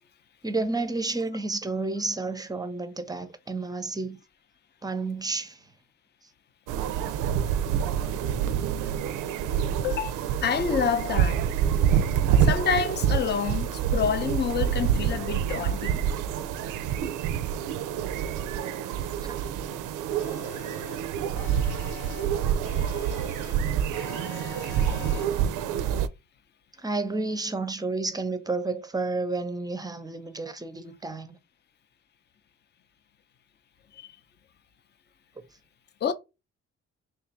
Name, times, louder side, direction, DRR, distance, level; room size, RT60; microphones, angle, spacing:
voice 1, 0.4-4.2 4.8-5.6 19.2-19.4 20.4-20.5 26.8-31.4, right 3 dB, 15° right, 0.6 m, -31 dB
sound 1, 6.7-26.1, right 9 dB, 85° right, 0.5 m, -27 dB
voice 2, 9.8-11.4 12.4-16.0 33.9-34.1 36.0-36.1, left 7 dB, 35° left, 0.6 m, -28 dB
sound 2, 20.2-21.0 21.4-22.3 22.7-23.5 23.9-25.3, left 7 dB, 70° left, 0.7 m, -44 dB
3.3 x 2.4 x 4.3 m
cardioid pair, 90°, 30 cm